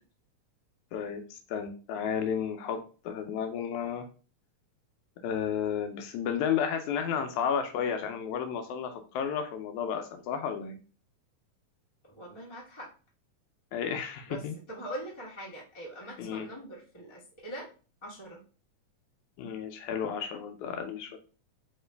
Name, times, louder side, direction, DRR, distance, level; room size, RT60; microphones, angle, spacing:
voice 1, 0.9-4.1 5.2-10.7 13.7-14.6 16.2-16.5 19.4-21.2, left 7 dB, 80° left, 6 dB, 1.9 m, -32 dB
voice 2, 12.0-12.9 14.3-14.4 14.7-17.7 18.0-18.4, right 1 dB, 30° left, -4 dB, 0.5 m, -42 dB
4.6 x 2.9 x 3.3 m, 0.36 s
omnidirectional pair, 3.6 m